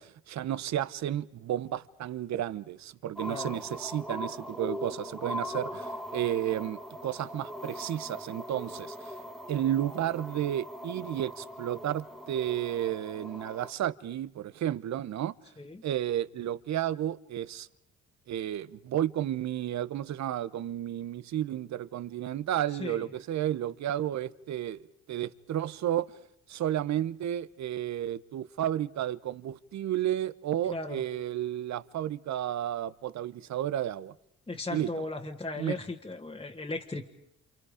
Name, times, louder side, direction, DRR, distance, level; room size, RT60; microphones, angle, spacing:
voice 1, 0.0-9.2 9.5-15.3 15.8-17.7 18.3-24.8 25.1-26.1 26.5-34.1 34.7-34.9 35.6-35.8, right 11 dB, 65° right, 0.9 m, -32 dB
sound 1, 3.2-13.7, equal, ahead, 1.8 m, -40 dB
voice 2, 3.3-3.6 15.6-15.8 22.8-23.1 30.7-31.0 34.5-37.1, left 2 dB, 15° left, 1.7 m, -37 dB
29.5 x 27.5 x 5.1 m
cardioid pair, 90°, 30 cm